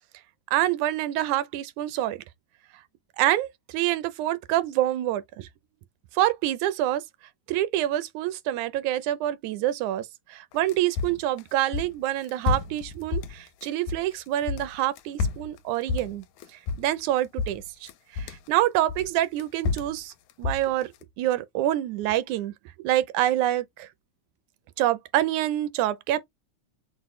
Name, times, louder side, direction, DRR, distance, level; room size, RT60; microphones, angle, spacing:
voice 1, 0.5-2.2 3.2-5.5 6.1-7.0 7.5-16.2 16.8-20.1 20.4-20.9 21.2-22.5 22.8-23.9 24.8-26.2, right 13 dB, 80° right, 1.9 m, -26 dB
sound 1, 10.5-14.1 14.4-17.1 17.4-18.5 18.9-21.0, left 5 dB, 85° left, 2.0 m, -30 dB
6.0 x 2.1 x 3.0 m
omnidirectional pair, 3.5 m